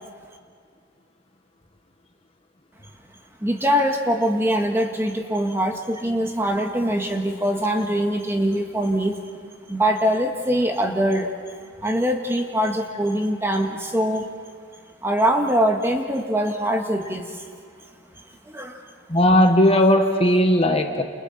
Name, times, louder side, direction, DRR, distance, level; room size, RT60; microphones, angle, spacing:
voice 1, 3.4-9.2 9.7-14.3 15.0-17.4 18.4-18.8, equal, 15° right, 3 dB, 1.7 m, -23 dB
voice 2, 19.1-21.0, left 1 dB, 30° left, 4 dB, 1.5 m, -17 dB
30.0 x 28.5 x 4.3 m, 2.1 s
head